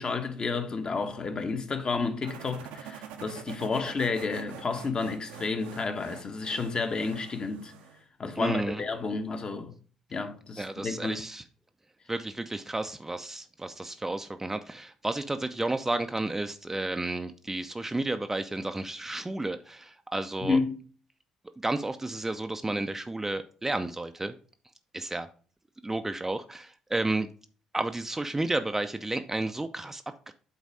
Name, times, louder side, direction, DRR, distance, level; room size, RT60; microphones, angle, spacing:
voice 1, 0.0-7.7 8.2-9.7 10.1-11.2 20.4-20.8, left 4 dB, 35° left, 1.1 m, -31 dB
sound 1, 2.2-8.0, right 7 dB, 65° right, 0.8 m, -45 dB
voice 2, 8.4-8.8 10.6-11.4 12.1-20.6 21.6-24.3 24.9-25.3 25.8-27.3 27.7-30.3, right 2 dB, 15° right, 0.6 m, -32 dB
8.3 x 4.1 x 4.8 m
figure-of-eight pair, 45°, 3 cm